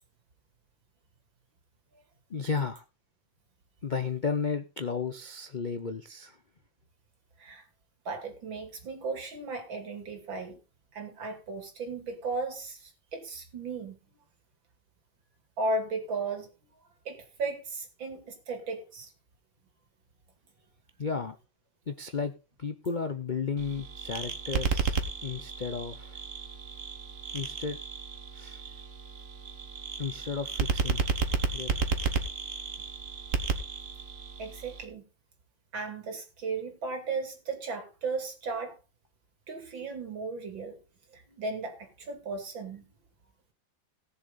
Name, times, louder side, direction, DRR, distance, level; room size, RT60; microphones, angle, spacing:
voice 1, 2.3-2.8 3.8-6.4 21.0-21.4 21.9-22.3 22.6-25.0 25.2-26.2 27.3-27.8 28.3-28.6 30.0-31.0 31.5-31.8, left 5 dB, 80° left, 10 dB, 0.4 m, -33 dB
voice 2, 8.0-10.6 10.9-14.0 15.6-16.5 17.0-19.1 28.4-28.8 34.4-35.0 35.7-38.8 39.5-40.8 41.1-42.8, right 3 dB, 85° right, 5 dB, 3.4 m, -36 dB
sound 1, 23.6-34.8, right 5 dB, 45° right, 1.5 m, -33 dB
18.0 x 7.0 x 4.0 m, 0.30 s
omnidirectional pair, 2.1 m